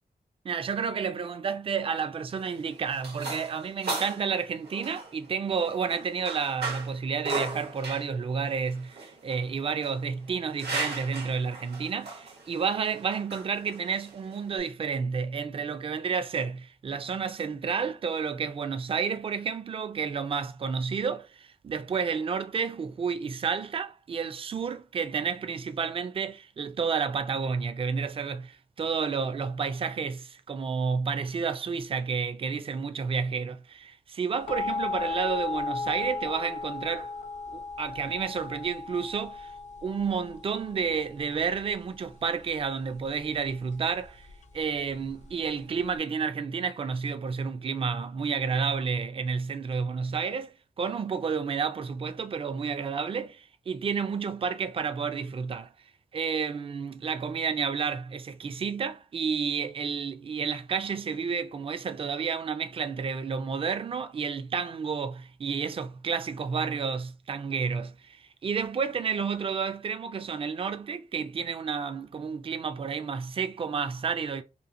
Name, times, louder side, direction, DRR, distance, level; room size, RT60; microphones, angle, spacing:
voice 1, 0.4-37.1 37.5-39.5 39.8-44.3 44.5-55.7 56.1-74.4, right 6 dB, 35° right, 0.3 m, -31 dB
sound 1, 2.3-14.6, right 3 dB, 90° right, 1.1 m, -38 dB
sound 2, 34.5-46.0, left 3 dB, 45° left, 0.4 m, -36 dB
2.9 x 2.4 x 2.5 m
wide cardioid pair, 95°, 16 cm